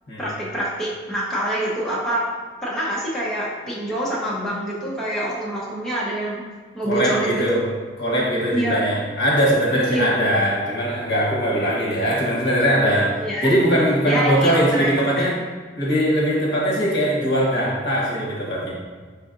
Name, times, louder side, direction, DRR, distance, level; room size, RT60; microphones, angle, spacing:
voice 1, 0.2-2.2 2.6-6.4 6.7-7.6 8.5-8.8 9.9-10.1 13.2-13.5 14.0-14.9 15.2-15.3, right 1 dB, 5° left, -8 dB, 0.9 m, -25 dB
voice 2, 6.8-7.7 8.0-15.4 15.8-18.7, equal, 65° left, -3 dB, 1.1 m, -21 dB
4.7 x 4.2 x 2.6 m, 1.5 s
head